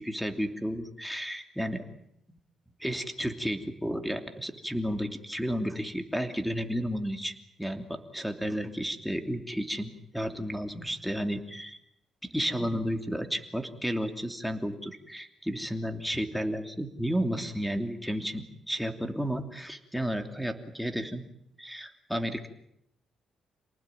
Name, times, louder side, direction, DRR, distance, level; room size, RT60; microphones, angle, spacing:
voice 1, 0.0-1.8 2.3-2.4 2.8-11.8 12.2-21.2 21.6-22.5, equal, ahead, 5 dB, 2.9 m, -32 dB
28.5 x 19.0 x 9.3 m, 0.78 s
cardioid pair, 90°, 0 cm